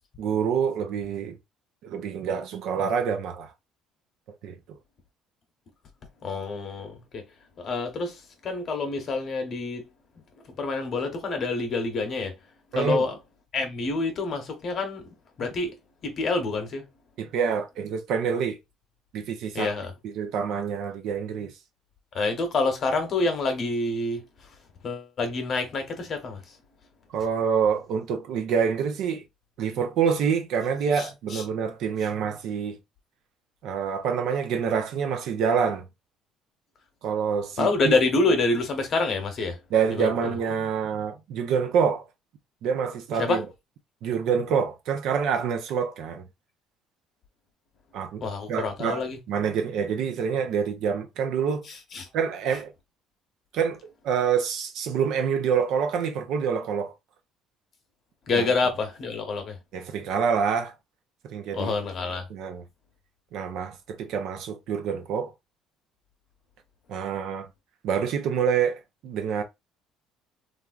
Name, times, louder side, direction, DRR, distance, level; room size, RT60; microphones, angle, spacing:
voice 1, 0.2-1.4 1.8-3.5 4.4-4.6 12.7-13.0 17.2-18.6 19.1-19.7 20.0-21.5 27.1-29.2 29.6-32.8 33.6-35.9 37.0-38.0 39.7-42.0 42.6-43.4 44.0-46.3 47.9-48.2 48.5-49.0 49.3-51.6 52.1-52.7 53.5-53.8 54.0-56.9 58.3-58.5 59.7-60.7 61.2-61.7 62.3-62.6 63.3-65.3 66.9-67.5 67.8-69.4, right 7 dB, 65° right, 0.7 m, -26 dB
voice 2, 6.2-7.2 7.6-9.8 10.5-12.3 12.7-13.2 13.5-15.0 15.4-15.7 16.0-16.8 19.5-19.9 22.1-24.2 24.8-26.6 31.0-31.4 37.6-39.6 39.9-40.3 43.2-43.4 48.2-49.2 51.9-52.1 58.3-59.6 61.5-62.2, left 3 dB, 45° left, 0.9 m, -27 dB
3.3 x 2.5 x 2.4 m
cardioid pair, 115°, 0 cm